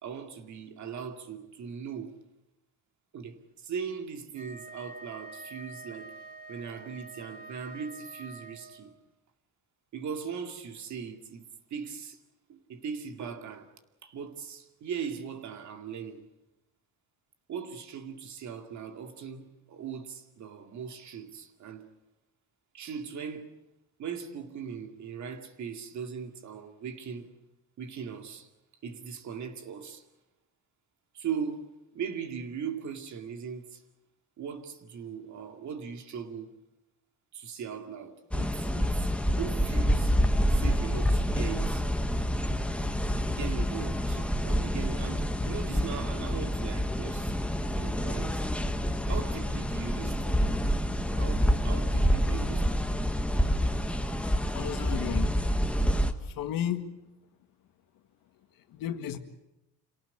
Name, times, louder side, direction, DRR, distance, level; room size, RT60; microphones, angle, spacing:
voice 1, 0.0-2.2 3.1-6.2 6.5-8.9 9.9-11.4 11.7-12.2 12.5-13.7 14.0-16.2 17.5-21.9 22.7-23.5 24.0-27.3 27.8-28.5 28.8-30.1 31.1-33.8 34.4-36.6 37.3-39.1 39.4-40.2 40.5-41.9 43.3-48.5 49.0-50.7 51.1-52.9, right 7 dB, 55° right, 2.3 m, -39 dB
Wind instrument woodwind instrument, 4.3-8.9, right 3 dB, 25° right, 2.3 m, -46 dB
sound 1, 38.3-56.1, equal, 5° left, 1.2 m, -27 dB
voice 2, 54.5-55.3 56.2-56.8 58.7-59.2, left 10 dB, 80° left, 1.8 m, -33 dB
27.0 x 18.0 x 8.4 m
cardioid pair, 140°, 34 cm